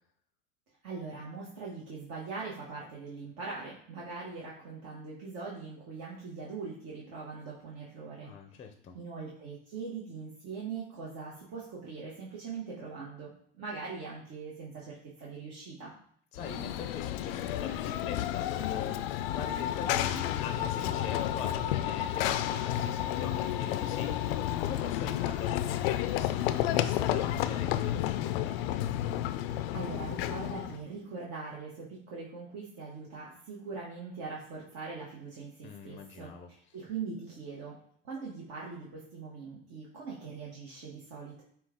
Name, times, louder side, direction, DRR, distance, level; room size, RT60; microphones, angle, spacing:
voice 1, 0.8-8.3 8.9-15.9 29.5-36.3 36.7-37.8 38.0-41.4, right 4 dB, 55° right, -4 dB, 1.3 m, -41 dB
voice 2, 8.2-9.0 16.3-28.6 35.6-36.5, left 6 dB, 25° left, 5 dB, 0.5 m, -43 dB
Run / Train, 16.3-30.8, left 12 dB, 75° left, 0.4 m, -31 dB
5.9 x 2.4 x 3.6 m, 0.65 s
supercardioid pair, 105°, 29 cm